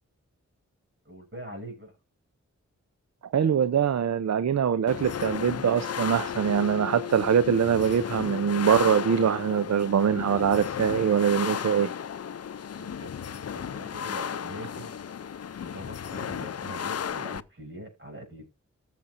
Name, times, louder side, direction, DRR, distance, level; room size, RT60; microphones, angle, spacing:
voice 1, 1.0-1.9 12.8-15.0 15.6-18.5, equal, 45° right, 6.1 m, -43 dB
voice 2, 3.3-11.9, right 8 dB, 65° right, 0.6 m, -23 dB
sound 1, 4.9-17.4, left 8 dB, 55° left, 0.5 m, -34 dB
14.5 x 7.6 x 2.5 m
cardioid pair, 45°, 30 cm